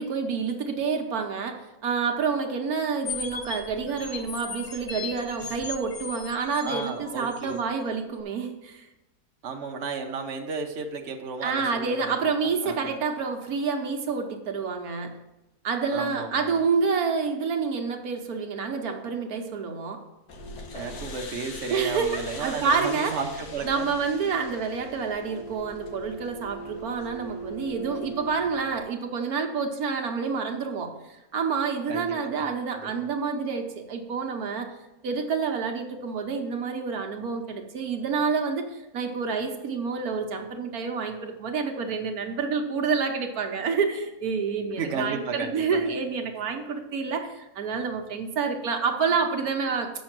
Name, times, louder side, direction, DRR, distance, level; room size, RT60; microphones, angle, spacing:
voice 1, 0.0-8.9 11.4-15.1 15.6-20.0 21.7-23.2 23.6-34.7 35.0-49.9, right 5 dB, 80° right, 4 dB, 1.5 m, -28 dB
sound 1, 3.0-7.6, left 6 dB, 40° left, 0.9 m, -37 dB
voice 2, 6.6-7.6 9.4-11.6 12.0-12.1 12.4-13.0 15.9-16.6 20.7-23.9 25.3-25.4 31.9-33.1 44.8-45.9, right 4 dB, 50° right, 2 dB, 1.1 m, -34 dB
sound 2, 20.3-28.8, right 1 dB, 80° left, 1.6 m, -40 dB
8.1 x 6.4 x 6.0 m, 0.96 s
omnidirectional pair, 1.6 m